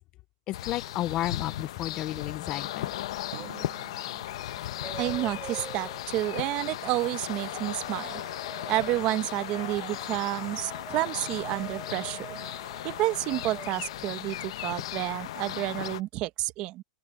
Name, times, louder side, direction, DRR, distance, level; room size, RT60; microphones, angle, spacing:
sound 1, 0.5-16.0, left 13 dB, 60° left, 0.9 m, -37 dB
voice 1, 0.5-2.9, left 14 dB, 25° left, 0.4 m, -32 dB
sound 2, 3.2-3.8 4.2-6.0 6.8-13.9, right 7 dB, 15° right, 3.4 m, -46 dB
Drum, 3.3-6.0, right 14 dB, 55° right, 2.6 m, -50 dB
voice 2, 5.0-8.2 8.7-12.4 12.8-16.8, right 17 dB, 30° right, 0.9 m, -30 dB
open air
supercardioid pair, 165°, 3 cm